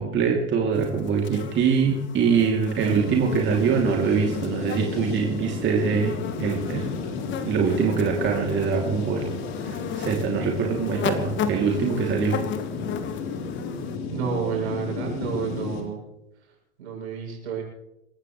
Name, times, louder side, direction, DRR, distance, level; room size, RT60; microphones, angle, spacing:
voice 1, 0.0-6.9 7.5-9.3 9.6-12.3, right 6 dB, 35° right, 0 dB, 3.0 m, -23 dB
sound 1, 0.7-14.0, left 7 dB, 35° left, 1.6 m, -36 dB
sound 2, 2.8-15.8, left 5 dB, 55° left, 4.1 m, -33 dB
voice 2, 14.1-16.0 16.8-17.6, right 6 dB, 75° right, -1 dB, 7.9 m, -30 dB
27.5 x 15.0 x 3.3 m, 0.91 s
hypercardioid pair, 100°, 33 cm